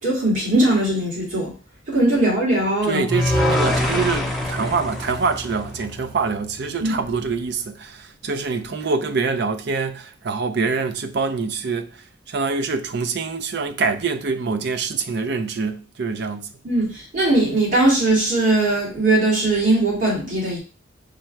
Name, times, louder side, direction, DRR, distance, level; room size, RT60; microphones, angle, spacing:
voice 1, 0.0-1.5 1.9-3.0 6.8-6.9 16.6-20.6, right 2 dB, 45° right, 2.1 m, -19 dB
voice 2, 2.8-11.9 12.3-16.5, right 4 dB, 60° right, 0.5 m, -25 dB
sound 1, 3.1-6.3, left 1 dB, ahead, 0.7 m, -24 dB
5.1 x 2.3 x 4.4 m
head